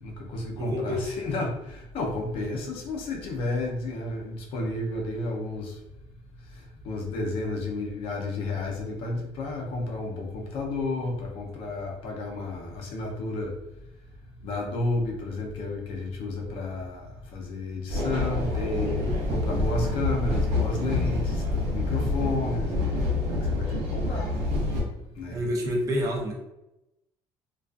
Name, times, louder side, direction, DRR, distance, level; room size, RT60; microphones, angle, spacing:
voice 1, 0.0-1.0 1.2-5.8 6.8-13.5 14.4-21.4 21.7-22.7 23.3-24.3 25.2-25.4, left 2 dB, 60° left, 1 dB, 0.5 m, -31 dB
voice 2, 0.6-1.1 18.8-19.2 25.3-26.3, equal, 30° right, -1 dB, 0.5 m, -29 dB
sound 1, 17.9-24.8, left 2 dB, 70° right, 0.7 m, -27 dB
2.3 x 2.3 x 2.4 m, 0.91 s
cardioid pair, 175°, 11 cm